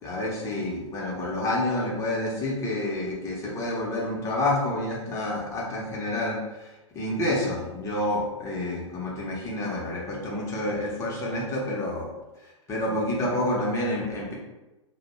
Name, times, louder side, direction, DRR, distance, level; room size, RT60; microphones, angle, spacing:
voice 1, 0.0-12.1 12.4-14.3, left 1 dB, 20° left, -3 dB, 0.7 m, -29 dB
2.2 x 2.1 x 2.9 m, 1.1 s
figure-of-eight pair, 105°, 16 cm